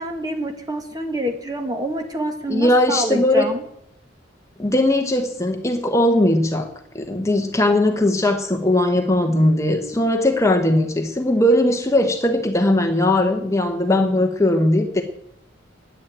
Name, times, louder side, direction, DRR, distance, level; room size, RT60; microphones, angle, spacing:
voice 1, 0.0-3.6, right 1 dB, 20° right, 5 dB, 1.8 m, -27 dB
voice 2, 2.5-3.5 4.6-6.7 6.9-15.0, left 1 dB, 15° left, 4 dB, 1.1 m, -19 dB
10.0 x 9.6 x 8.9 m, 0.73 s
head